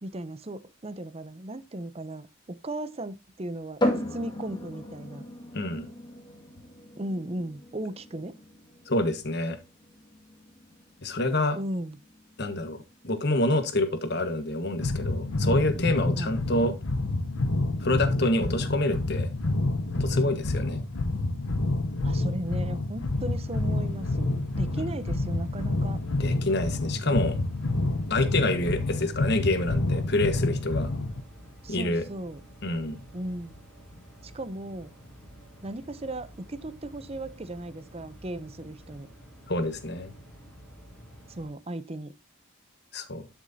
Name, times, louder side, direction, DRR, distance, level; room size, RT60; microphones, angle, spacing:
voice 1, 0.0-3.8 4.1-5.2 7.0-8.4 11.5-12.0 16.2-16.3 22.0-26.0 31.6-32.4 33.1-33.6 34.2-34.9 35.6-39.1 41.3-42.2, right 1 dB, 30° right, 0.6 m, -36 dB
sound 1, 3.8-17.3, left 1 dB, 20° left, 2.1 m, -37 dB
voice 2, 5.5-5.8 8.9-9.6 11.0-11.6 12.4-12.8 13.0-16.7 17.8-19.3 19.9-20.8 24.8-24.9 26.2-27.4 28.1-30.9 31.7-32.0 32.6-33.0 39.5-40.1 42.9-43.3, left 1 dB, 50° left, 1.4 m, -27 dB
sound 2, 14.8-31.2, left 2 dB, 75° left, 0.9 m, -28 dB
sound 3, 23.1-41.5, equal, 5° left, 2.8 m, -50 dB
11.5 x 6.2 x 2.7 m
head